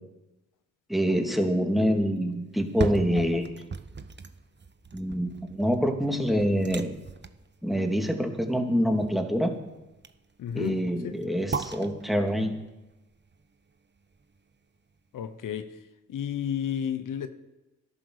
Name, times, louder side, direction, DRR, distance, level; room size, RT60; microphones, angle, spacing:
voice 1, 0.9-3.5 4.9-6.9 7.6-9.5 10.5-12.5, equal, ahead, 2.8 m, -26 dB
sound 1, 2.5-14.6 15.0-15.1, right 4 dB, 35° right, 1.0 m, -39 dB
voice 2, 10.4-11.2 15.1-15.7 16.1-17.3, left 9 dB, 85° left, 0.9 m, -32 dB
13.0 x 11.0 x 6.6 m
supercardioid pair, 45°, 31 cm